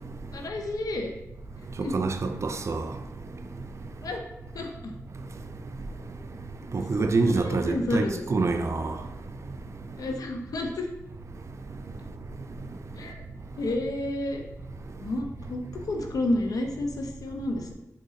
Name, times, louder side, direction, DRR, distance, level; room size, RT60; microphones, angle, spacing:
voice 1, 0.3-1.1 1.8-2.0 4.0-4.3 4.5-4.9 6.8-8.2 10.0-10.9 13.0-13.2 13.6-14.4 15.0-17.7, left 2 dB, 85° left, 0.3 m, -31 dB
voice 2, 1.8-2.9 6.7-8.9, right 3 dB, 50° right, 0.3 m, -26 dB
3.8 x 2.9 x 2.4 m
cardioid pair, 40°, 6 cm